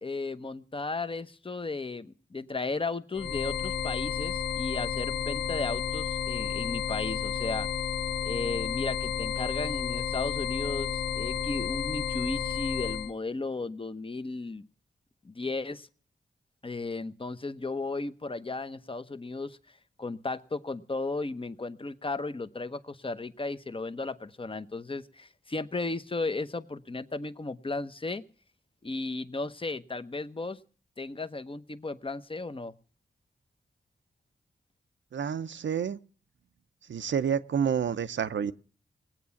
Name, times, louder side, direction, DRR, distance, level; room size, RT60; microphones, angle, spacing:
voice 1, 0.0-7.7 8.2-14.6 15.2-15.9 16.6-19.6 20.0-28.2 28.8-30.6 31.0-32.7, left 3 dB, 30° left, 0.9 m, -35 dB
sound 1, 3.1-13.1, left 7 dB, 70° left, 1.5 m, -31 dB
voice 2, 35.1-36.0 36.9-38.5, right 7 dB, 80° right, 0.7 m, -29 dB
19.0 x 8.6 x 7.1 m
cardioid pair, 60°, 19 cm